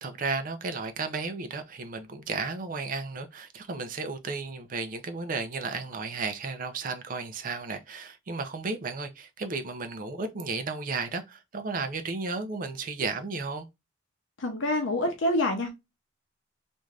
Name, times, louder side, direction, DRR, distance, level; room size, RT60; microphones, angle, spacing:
voice 1, 0.0-13.7, right 4 dB, 45° right, 0.5 m, -34 dB
voice 2, 14.4-15.7, left 1 dB, 70° left, 0.6 m, -26 dB
3.2 x 2.6 x 2.3 m
head